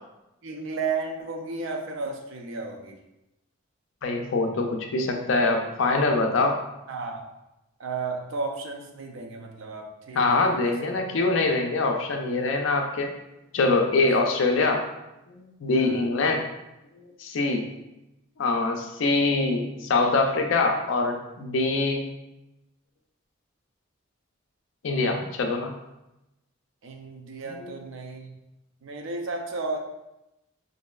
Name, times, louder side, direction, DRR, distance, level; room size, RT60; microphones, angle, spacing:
voice 1, 0.4-3.0 6.9-7.2 7.8-10.8 15.8-16.1 26.8-28.4 28.8-29.8, right 4 dB, 65° right, 2 dB, 0.4 m, -33 dB
voice 2, 4.0-6.6 10.1-13.1 13.5-14.8 15.3-16.5 17.2-17.7 18.4-22.1 24.8-25.8 27.6-27.7, left 3 dB, 65° left, 3 dB, 0.4 m, -24 dB
3.0 x 2.6 x 2.3 m, 0.93 s
head